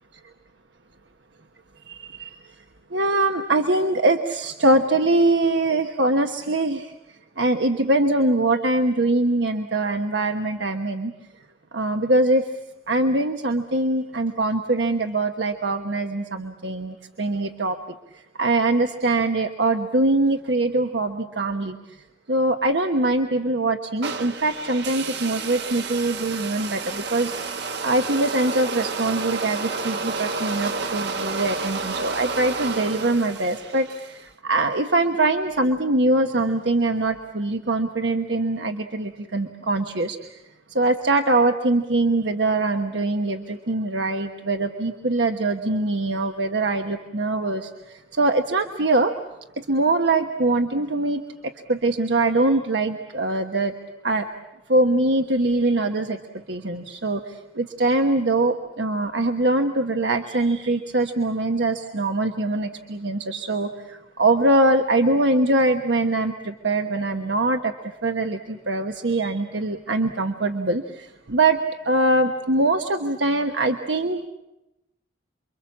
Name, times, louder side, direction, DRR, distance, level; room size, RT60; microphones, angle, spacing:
voice 1, 1.9-2.4 2.9-6.9 7.4-11.1 11.7-12.5 12.9-17.8 18.1-21.8 22.3-27.5 27.8-40.4 40.7-49.1 49.6-53.7 54.0-54.3 54.7-56.2 56.5-71.6 71.8-74.2, right 2 dB, 85° right, 5 dB, 1.2 m, -23 dB
sound 1, 24.0-34.2, right 4 dB, 65° right, 1.2 m, -30 dB
29.0 x 24.0 x 7.4 m, 0.94 s
head